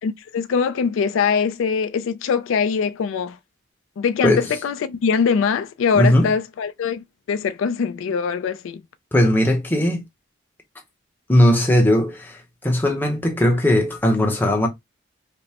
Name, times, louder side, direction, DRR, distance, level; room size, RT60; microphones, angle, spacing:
voice 1, 0.0-3.4 4.0-8.8, left 6 dB, 85° left, 0.3 m, -22 dB
voice 2, 6.0-6.3 9.1-10.0 11.3-14.7, left 1 dB, 10° left, 0.8 m, -18 dB
5.2 x 2.0 x 2.8 m
head